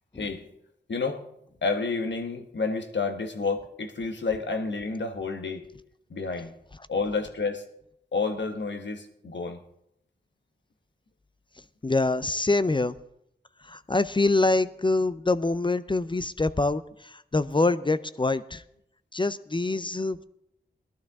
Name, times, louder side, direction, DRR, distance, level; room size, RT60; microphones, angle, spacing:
voice 1, 0.9-1.2 1.6-5.6 6.1-6.5 6.9-7.6 8.1-9.6, left 4 dB, 85° left, 1.2 m, -30 dB
voice 2, 11.8-13.0 13.6-18.6 19.1-20.2, left 2 dB, 25° left, 0.5 m, -25 dB
18.0 x 12.0 x 3.6 m
cardioid pair, 50°, 18 cm